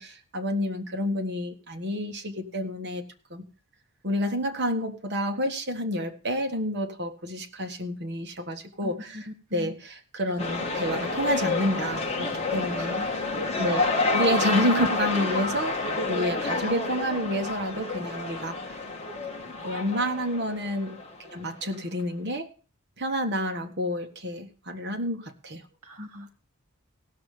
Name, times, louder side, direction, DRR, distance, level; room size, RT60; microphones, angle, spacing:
voice 1, 0.0-3.0 3.3-3.4 4.0-13.0 13.6-18.8 19.6-22.5 23.0-25.6, equal, 50° right, 4 dB, 1.7 m, -29 dB
voice 2, 8.8-9.7 12.8-13.1 13.5-13.6 25.8-26.3, left 1 dB, 80° right, 6 dB, 1.7 m, -40 dB
sound 1, 10.4-21.3 21.7-21.8, left 3 dB, 30° left, 1.5 m, -29 dB
17.5 x 6.8 x 5.0 m, 0.37 s
head